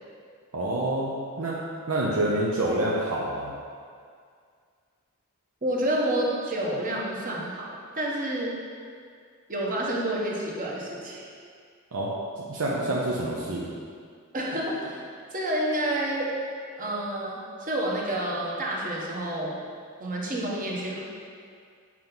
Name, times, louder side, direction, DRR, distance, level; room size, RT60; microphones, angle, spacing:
voice 1, 0.5-1.6 1.9-3.5 11.9-12.1 12.5-13.7, right 1 dB, 85° right, -5 dB, 0.7 m, -27 dB
voice 2, 5.6-8.6 9.5-11.3 14.3-15.1 15.3-16.3 16.8-19.6 20.0-21.0, right 1 dB, 40° right, -4 dB, 1.1 m, -29 dB
7.4 x 4.5 x 3.9 m, 2.2 s
head